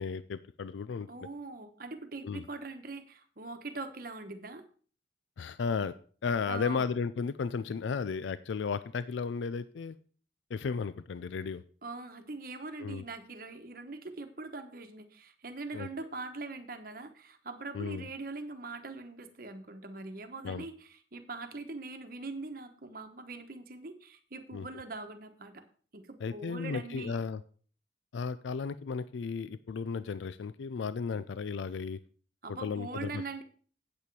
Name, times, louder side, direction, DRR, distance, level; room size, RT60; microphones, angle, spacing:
voice 1, 0.0-1.1 2.2-2.4 5.4-5.9 6.2-10.0 10.5-11.6 12.8-13.0 15.7-15.9 17.7-18.1 20.4-20.6 24.5-24.7 26.2-27.4 28.1-32.0 32.5-33.4, left 5 dB, 80° left, 15 dB, 0.4 m, -34 dB
voice 2, 1.1-4.6 6.5-6.9 11.8-25.6 25.9-27.2 32.4-33.4, right 3 dB, 50° right, 7 dB, 1.1 m, -42 dB
8.6 x 8.2 x 4.7 m, 0.43 s
head